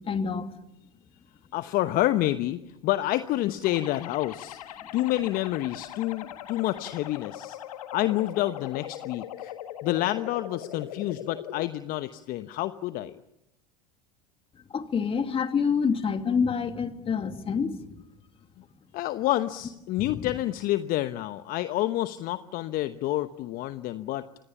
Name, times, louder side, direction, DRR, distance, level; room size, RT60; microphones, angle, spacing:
voice 1, 0.1-0.5 14.7-17.8, left 6 dB, 30° left, 2.5 m, -27 dB
voice 2, 1.5-7.6 7.9-9.5 9.8-13.2 18.9-24.3, left 15 dB, 50° left, 1.0 m, -28 dB
sound 1, 3.6-11.6, left 11 dB, 75° left, 1.8 m, -40 dB
28.0 x 25.0 x 7.2 m
hypercardioid pair, 80°, 19 cm